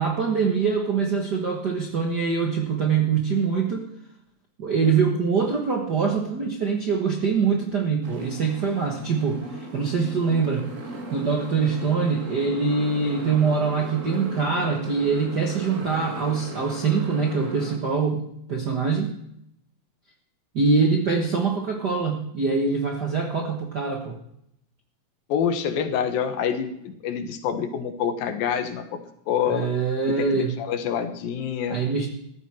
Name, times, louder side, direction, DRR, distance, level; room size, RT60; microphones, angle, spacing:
voice 1, 0.0-3.9 4.6-10.7 11.1-19.1 20.5-24.2 29.5-30.5 31.7-32.1, right 5 dB, 55° right, 1 dB, 1.1 m, -24 dB
Motorcycle, 8.0-17.8, right 2 dB, 30° right, 1.5 m, -37 dB
voice 2, 25.3-28.8 29.3-29.7 30.2-31.8, left 8 dB, 85° left, 8 dB, 3.1 m, -26 dB
15.0 x 13.0 x 4.8 m, 0.74 s
omnidirectional pair, 4.0 m